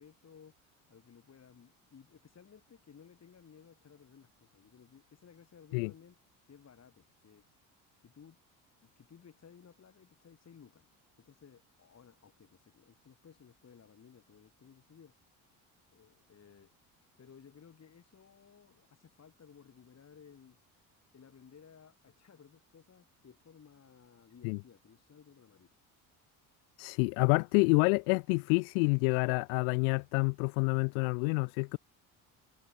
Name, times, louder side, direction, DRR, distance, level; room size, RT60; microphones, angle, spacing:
voice 1, 0.0-6.2 6.5-7.4 8.0-8.4 8.8-10.9 11.2-15.1 15.9-20.6 21.1-25.7, left 7 dB, 35° left, 4.0 m, -58 dB
voice 2, 26.8-31.8, left 38 dB, 85° left, 0.5 m, -28 dB
supercardioid pair, 75°, 42 cm